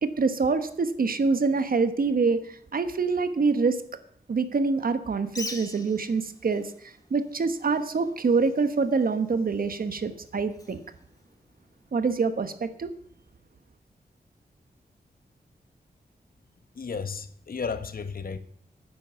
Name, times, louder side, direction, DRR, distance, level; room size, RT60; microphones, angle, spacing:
voice 1, 0.0-3.8 4.3-10.8 11.9-12.9, right 4 dB, 60° right, 1.2 m, -25 dB
Bird, 5.2-11.9, left 2 dB, 20° left, 1.9 m, -45 dB
voice 2, 16.8-18.4, left 5 dB, 60° left, 1.0 m, -33 dB
10.5 x 9.4 x 6.9 m
wide cardioid pair, 110°, 17 cm